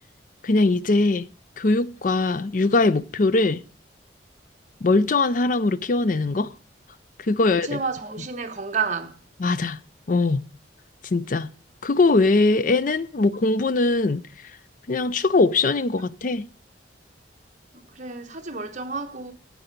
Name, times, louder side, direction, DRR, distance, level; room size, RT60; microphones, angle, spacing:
voice 1, 0.4-1.3 1.6-3.6 4.8-6.5 7.3-7.8 9.4-9.8 10.1-10.5 11.1-11.5 11.8-14.2 14.9-16.5, left 3 dB, 45° left, 0.5 m, -21 dB
voice 2, 7.4-9.2 17.7-19.3, right 5 dB, 40° right, 1.2 m, -30 dB
10.0 x 8.4 x 5.2 m
head